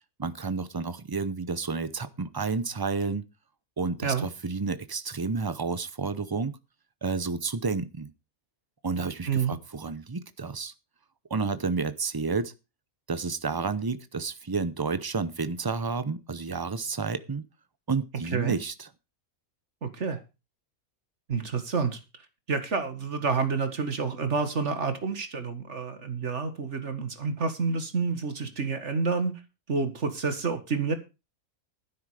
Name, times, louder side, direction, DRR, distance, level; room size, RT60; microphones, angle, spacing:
voice 1, 0.2-3.3 3.8-6.6 7.0-8.1 8.8-10.7 11.3-12.5 13.1-17.4 17.9-18.9, right 4 dB, 30° right, 14 dB, 0.4 m, -30 dB
voice 2, 19.8-20.2 21.3-22.0 22.5-29.3 29.7-30.9, right 5 dB, 55° right, 9 dB, 2.0 m, -28 dB
12.0 x 9.9 x 4.9 m, 0.28 s
omnidirectional pair, 1.5 m